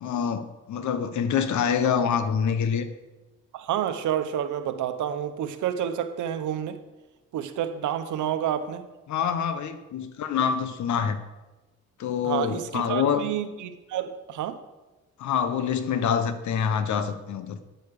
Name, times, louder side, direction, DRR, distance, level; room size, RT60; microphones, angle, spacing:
voice 1, 0.0-2.9 9.1-11.2 12.0-13.2 15.2-17.6, left 7 dB, 70° left, 1.1 m, -26 dB
voice 2, 3.5-6.8 7.3-8.9 12.2-14.6, right 10 dB, 75° right, 1.0 m, -29 dB
9.1 x 8.5 x 6.5 m
cardioid pair, 90°, 30 cm